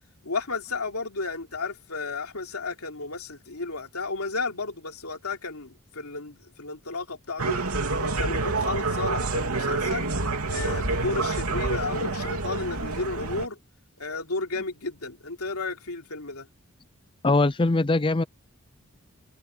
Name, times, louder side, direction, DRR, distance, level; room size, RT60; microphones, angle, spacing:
voice 1, 0.2-7.6 8.0-10.1 10.5-13.6 14.0-16.5, left 3 dB, 85° left, 3.2 m, -33 dB
sound 1, 7.4-13.5, right 3 dB, 80° right, 3.1 m, -28 dB
voice 2, 17.2-18.2, left 2 dB, 25° left, 0.5 m, -21 dB
head